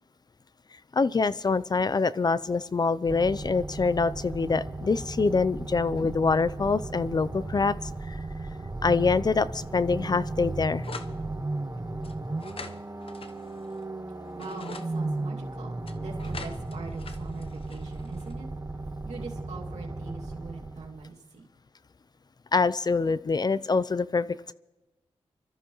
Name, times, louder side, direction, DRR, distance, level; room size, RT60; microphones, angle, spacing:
voice 1, 0.9-7.7 8.1-8.2 8.8-10.9 22.5-24.5, left 4 dB, 35° left, 17 dB, 0.5 m, -25 dB
sound 1, 3.1-21.1, right 2 dB, 25° right, 1.3 m, -35 dB
sound 2, 10.8-11.2 12.0-13.8 14.3-14.9 15.9-18.3, left 4 dB, 55° left, 0.9 m, -44 dB
voice 2, 14.3-18.5 19.0-21.5, right 4 dB, 85° right, -2 dB, 2.3 m, -42 dB
26.0 x 13.5 x 3.1 m, 1.1 s
cardioid pair, 65°, 11 cm